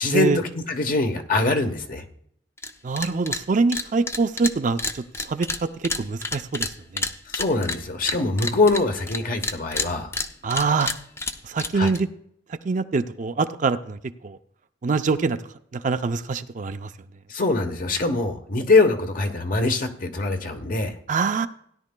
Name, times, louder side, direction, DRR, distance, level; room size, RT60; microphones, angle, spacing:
voice 1, 0.0-2.0 7.3-10.1 11.7-11.9 17.3-20.9, left 3 dB, 50° left, 5 dB, 1.0 m, -23 dB
sound 1, 2.6-2.7 3.0-3.4 3.7-9.2 9.4-12.0, left 3 dB, 15° left, 0.5 m, -29 dB
voice 2, 2.8-5.5 5.8-7.1 10.4-10.9 11.4-12.1 12.6-14.4 14.8-15.4 15.7-16.9 21.1-21.5, right 4 dB, 45° right, 10 dB, 0.5 m, -24 dB
16.5 x 10.5 x 2.2 m, 0.67 s
head